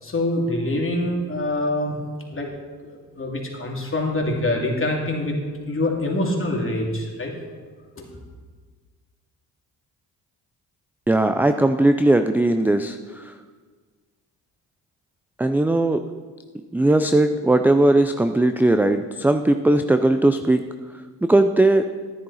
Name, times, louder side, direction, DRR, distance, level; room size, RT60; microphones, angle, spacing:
voice 1, 0.0-2.0 2.3-2.5 2.8-5.4 5.7-7.3 8.0-8.2, left 1 dB, 30° left, 0 dB, 2.6 m, -25 dB
voice 2, 11.1-13.3 15.4-16.2 16.7-20.6 21.2-21.8, right 2 dB, 5° right, 8 dB, 0.4 m, -18 dB
10.5 x 10.0 x 4.1 m, 1.5 s
supercardioid pair, 65°, 41 cm